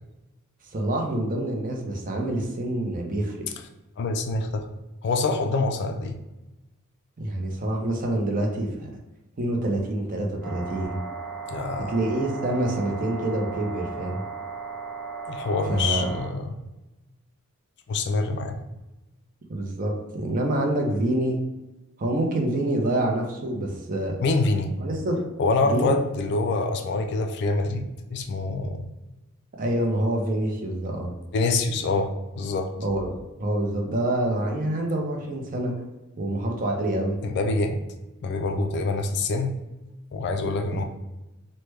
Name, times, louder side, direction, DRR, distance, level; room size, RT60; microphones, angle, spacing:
voice 1, 0.7-3.5 7.2-8.9 9.4-11.0 11.9-14.2 15.7-16.1 19.5-21.4 22.0-24.2 24.8-25.2 25.6-25.9 29.6-31.1 32.8-33.1 33.4-35.7 36.2-37.2 40.7-40.8, right 1 dB, 40° right, 1 dB, 0.5 m, -26 dB
voice 2, 4.0-4.7 5.0-6.2 11.5-11.9 15.3-16.5 17.9-18.6 24.2-24.7 25.4-28.9 31.3-32.7 37.2-37.8 38.2-39.6 40.1-40.8, left 3 dB, 50° left, 5 dB, 0.3 m, -25 dB
sound 1, 10.4-16.3, right 5 dB, 5° left, 1.2 m, -36 dB
3.1 x 2.1 x 3.3 m, 1.0 s
head